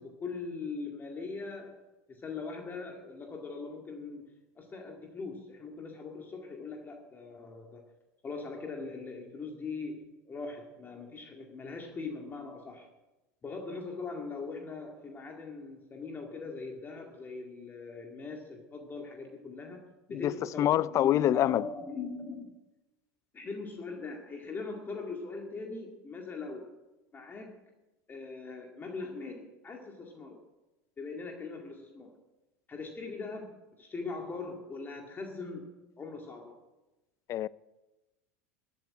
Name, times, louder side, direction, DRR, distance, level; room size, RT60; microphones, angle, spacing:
voice 1, 0.0-7.8 8.2-12.9 13.4-22.5 23.3-26.7 27.1-27.6 28.1-30.4 31.0-32.2 32.7-36.6, left 4 dB, 25° left, 2.2 m, -41 dB
voice 2, 20.6-21.7 37.3-37.5, left 12 dB, 40° left, 0.5 m, -25 dB
14.0 x 8.2 x 9.7 m
hypercardioid pair, 95°, 8 cm